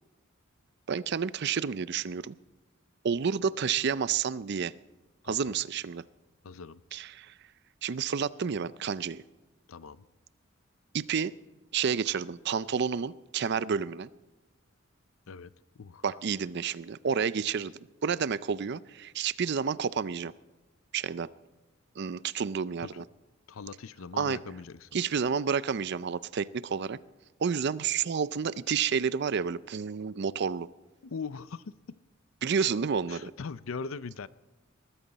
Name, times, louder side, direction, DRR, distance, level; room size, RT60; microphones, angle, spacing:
voice 1, 0.9-2.3 3.0-4.7 5.3-6.0 6.9-7.3 7.8-9.2 10.9-11.3 11.7-14.1 16.0-17.7 18.0-20.3 20.9-21.3 22.0-23.0 24.2-24.4 24.9-27.0 27.4-30.7 32.4-33.3, right 6 dB, 55° right, 18 dB, 0.5 m, -30 dB
voice 2, 6.4-6.8 9.7-10.0 15.3-16.2 22.8-23.1 23.5-24.9 31.0-32.0 33.1-34.3, left 5 dB, 80° left, 17 dB, 0.6 m, -41 dB
20.0 x 14.0 x 4.1 m, 1.1 s
head